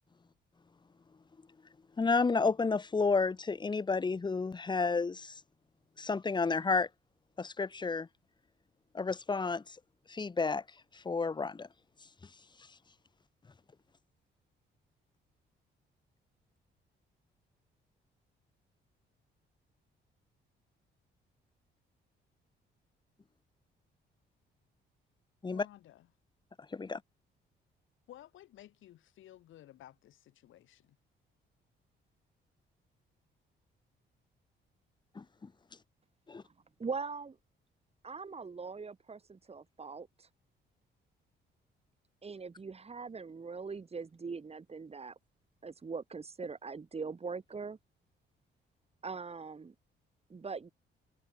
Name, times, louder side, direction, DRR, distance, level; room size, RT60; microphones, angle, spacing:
voice 1, 2.0-5.3 6.0-6.9 7.4-8.1 8.9-9.8 10.1-10.6 10.9-11.7 25.4-25.6 26.7-27.0 35.2-35.3 36.3-36.4, left 4 dB, 20° left, 1.0 m, -31 dB
voice 2, 25.5-26.1 28.1-31.0, left 13 dB, 80° left, 4.9 m, -55 dB
voice 3, 36.8-37.4 38.0-40.3 42.2-45.2 45.6-47.8 49.0-49.7 50.3-50.7, right 4 dB, 30° right, 3.0 m, -41 dB
cardioid pair, 90°, 20 cm